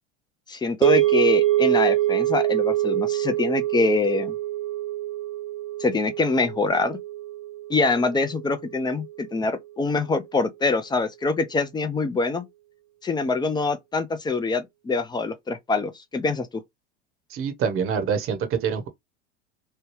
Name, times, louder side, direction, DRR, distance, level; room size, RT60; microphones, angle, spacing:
voice 1, 0.5-4.3 5.8-7.0 7.7-12.5 13.0-16.5, left 3 dB, 10° left, 0.6 m, -24 dB
sound 1, 0.8-9.1, right 14 dB, 90° right, 0.7 m, -25 dB
voice 2, 17.3-18.9, right 6 dB, 40° right, 1.0 m, -25 dB
3.3 x 2.2 x 3.0 m
hypercardioid pair, 85°, 34 cm